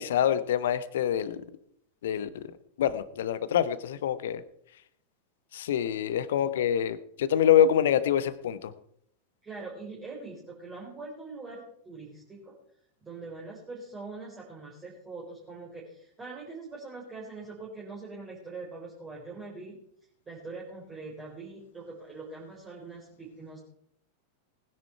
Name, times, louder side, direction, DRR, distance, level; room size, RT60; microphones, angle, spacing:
voice 1, 0.0-1.5 2.0-2.5 2.8-4.4 5.5-8.7, left 9 dB, 60° left, 15 dB, 1.0 m, -26 dB
voice 2, 9.4-12.5 13.0-19.8 20.3-23.6, right 3 dB, 15° right, -4 dB, 4.3 m, -43 dB
19.5 x 10.0 x 4.6 m, 0.69 s
figure-of-eight pair, 90°, 0 cm